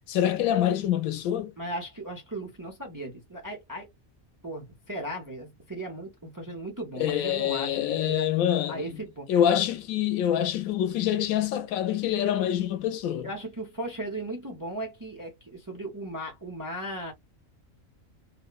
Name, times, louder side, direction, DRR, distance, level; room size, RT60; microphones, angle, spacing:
voice 1, 0.1-1.5 7.0-8.9 9.3-13.3, left 10 dB, 85° left, 1.0 m, -26 dB
voice 2, 1.6-3.9 4.4-8.3 8.7-9.3 13.2-17.1, right 1 dB, 25° right, 0.4 m, -37 dB
2.8 x 2.1 x 2.3 m
omnidirectional pair, 1.4 m